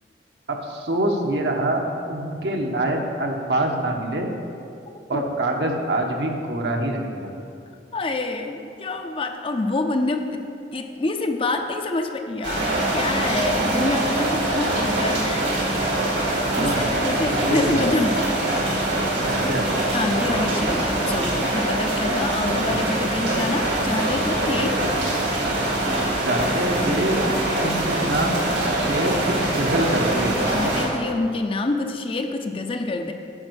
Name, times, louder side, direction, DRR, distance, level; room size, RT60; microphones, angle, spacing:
voice 1, 0.5-1.8 2.1-4.3 5.1-7.3 16.5-16.9 17.3-17.9 19.2-19.7 22.6-22.8 26.2-27.2 27.6-30.4, right 1 dB, 70° right, 2 dB, 1.1 m, -25 dB
voice 2, 7.9-10.4 10.7-15.5 16.6-18.3 19.2-19.4 19.9-24.8 30.5-33.1, left 2 dB, 30° left, 6 dB, 0.5 m, -26 dB
sound 1, 12.4-30.9, right 1 dB, 90° right, 2.4 m, -23 dB
9.8 x 5.3 x 6.3 m, 2.5 s
head